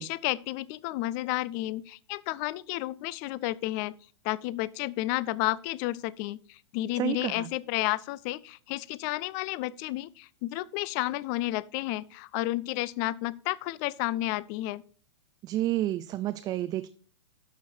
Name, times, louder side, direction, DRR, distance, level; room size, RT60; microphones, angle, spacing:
voice 1, 0.0-3.9 4.2-14.8, left 17 dB, 40° left, 0.6 m, -31 dB
voice 2, 6.9-7.5 15.4-16.9, right 14 dB, 25° right, 0.5 m, -30 dB
12.0 x 7.1 x 4.5 m
figure-of-eight pair, 105°, 15 cm